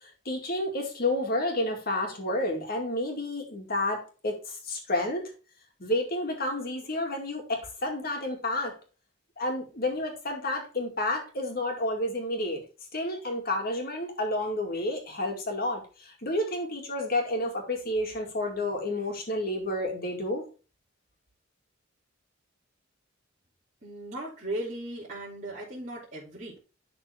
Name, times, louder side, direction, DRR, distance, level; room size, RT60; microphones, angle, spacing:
voice 1, 0.0-5.2 5.8-8.7 9.4-12.6 12.9-20.4, left 1 dB, 50° left, 2 dB, 2.2 m, -30 dB
voice 2, 23.8-26.6, right 1 dB, 40° right, -7 dB, 2.9 m, -37 dB
11.0 x 4.3 x 3.5 m, 0.34 s
head